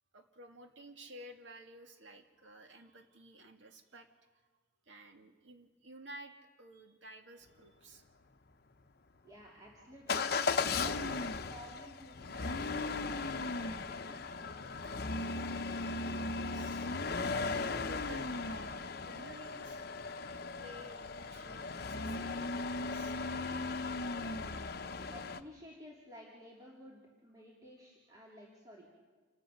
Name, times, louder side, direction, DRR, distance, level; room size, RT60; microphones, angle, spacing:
voice 1, 0.1-4.1 4.9-8.0 15.9-19.9 20.6-23.2, right 1 dB, 80° right, 4 dB, 2.1 m, -54 dB
voice 2, 9.2-15.1 24.1-24.5 25.1-28.9, equal, 20° right, -4 dB, 3.0 m, -54 dB
Motor vehicle (road) / Engine starting / Accelerating revving vroom, 10.1-25.4, left 3 dB, 55° left, 0.8 m, -37 dB
28.0 x 16.0 x 6.5 m, 1.4 s
head